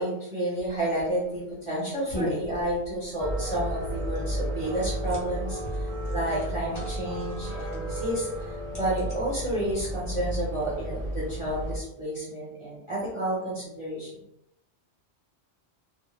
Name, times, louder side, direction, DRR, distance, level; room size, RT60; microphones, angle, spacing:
voice 1, 0.0-14.2, right 1 dB, 35° right, -7 dB, 0.6 m, -31 dB
sound 1, 0.6-10.1, left 1 dB, 25° left, 0.8 m, -41 dB
sound 2, 3.2-11.8, right 1 dB, 75° right, 1.0 m, -33 dB
2.1 x 2.0 x 3.0 m, 0.82 s
omnidirectional pair, 1.2 m